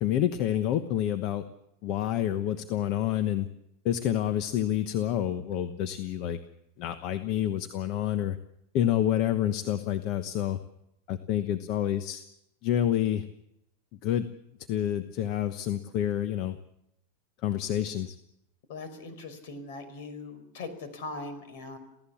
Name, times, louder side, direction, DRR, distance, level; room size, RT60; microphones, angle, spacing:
voice 1, 0.0-1.4 1.8-3.5 3.8-6.4 6.8-8.4 8.7-10.6 11.1-12.2 12.6-13.2 14.0-14.3 14.7-16.6 17.4-18.2, left 11 dB, 40° left, 10 dB, 1.1 m, -28 dB
voice 2, 18.7-21.8, left 3 dB, 60° left, 10 dB, 5.2 m, -40 dB
28.0 x 16.0 x 7.2 m, 0.82 s
supercardioid pair, 155°, 0 cm